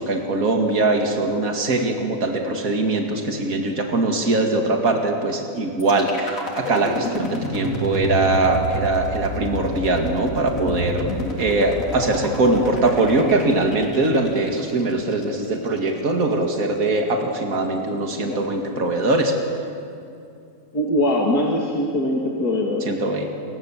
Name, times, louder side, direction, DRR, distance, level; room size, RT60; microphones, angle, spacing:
voice 1, 0.0-11.1 11.4-19.4 22.9-23.3, right 2 dB, 60° right, 2 dB, 2.7 m, -21 dB
sound 1, 5.8-15.8, equal, 55° left, 3.9 m, -30 dB
voice 2, 20.7-23.1, left 1 dB, 70° left, -1 dB, 3.0 m, -22 dB
29.5 x 24.5 x 7.4 m, 2.6 s
omnidirectional pair, 1.7 m